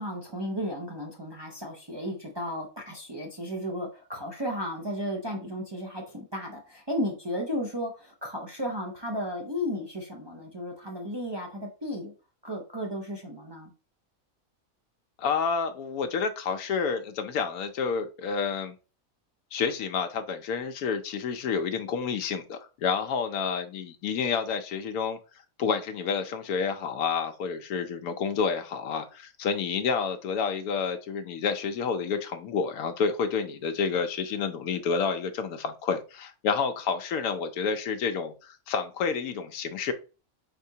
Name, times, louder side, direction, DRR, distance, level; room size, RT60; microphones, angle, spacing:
voice 1, 0.0-12.1 12.4-13.7, equal, 35° right, 0.4 m, -34 dB
voice 2, 15.2-18.7 19.5-25.2 25.6-39.9, left 5 dB, 85° left, 1.0 m, -29 dB
4.5 x 4.1 x 2.7 m
omnidirectional pair, 1.5 m